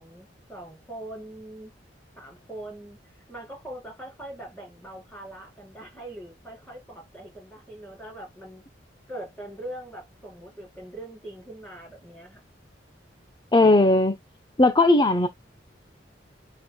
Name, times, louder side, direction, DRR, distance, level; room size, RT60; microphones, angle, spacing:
voice 1, 0.0-1.7 2.2-3.0 3.3-8.6 9.1-12.4, right 1 dB, 10° left, 4.3 m, -41 dB
voice 2, 13.5-14.2 14.6-15.3, left 2 dB, 25° left, 0.8 m, -17 dB
10.0 x 4.5 x 2.3 m
head